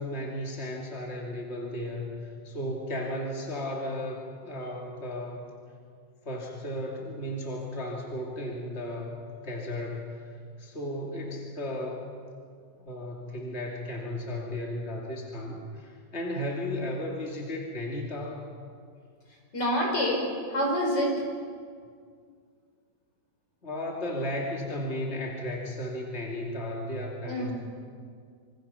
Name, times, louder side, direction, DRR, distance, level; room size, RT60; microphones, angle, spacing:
voice 1, 0.0-5.4 6.2-10.1 10.6-12.1 12.8-18.4 23.6-27.5, left 1 dB, 35° left, -1 dB, 3.0 m, -34 dB
voice 2, 19.5-21.1 27.2-27.5, equal, 80° left, -1 dB, 6.2 m, -27 dB
26.5 x 26.0 x 5.8 m, 2.1 s
omnidirectional pair, 1.9 m